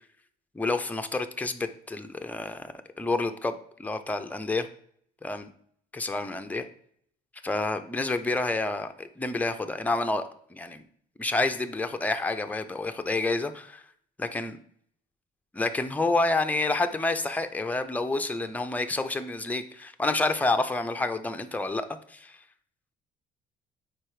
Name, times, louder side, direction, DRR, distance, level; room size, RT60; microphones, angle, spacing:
voice 1, 0.5-4.7 5.2-5.5 5.9-6.7 7.4-10.8 11.2-13.8 14.2-14.6 15.5-22.4, left 2 dB, 10° left, 7 dB, 0.5 m, -29 dB
4.6 x 4.4 x 4.9 m, 0.63 s
cardioid pair, 110°, 17 cm